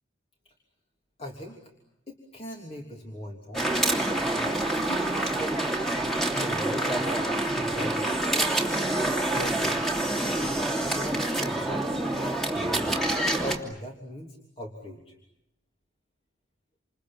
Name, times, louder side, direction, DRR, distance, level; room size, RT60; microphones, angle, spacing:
voice 1, 1.2-1.6 2.1-3.7 4.4-5.6 5.9-8.2 8.8-9.8 10.6-15.1, equal, 30° left, 0 dB, 3.1 m, -40 dB
sound 1, 3.5-13.6, right 1 dB, ahead, 2.9 m, -27 dB
28.5 x 27.5 x 7.4 m, 0.85 s
head